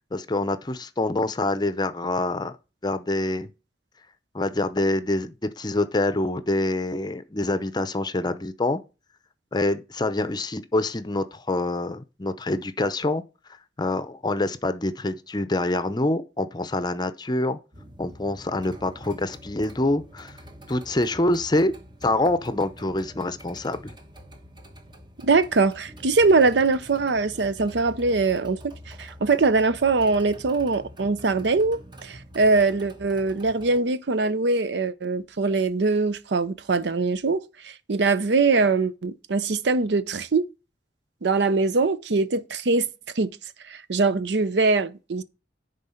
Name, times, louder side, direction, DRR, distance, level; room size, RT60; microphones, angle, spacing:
voice 1, 0.1-2.5 2.8-3.5 4.3-8.8 9.5-13.2 13.8-17.6 18.0-20.4 20.7-21.7 22.0-24.0, left 2 dB, 25° left, 0.6 m, -26 dB
sound 1, 17.7-33.8, equal, 25° right, 1.1 m, -46 dB
voice 2, 25.2-40.4 41.2-42.9 43.2-43.3 43.7-45.2, right 3 dB, 70° right, 0.6 m, -22 dB
10.0 x 3.9 x 5.6 m
head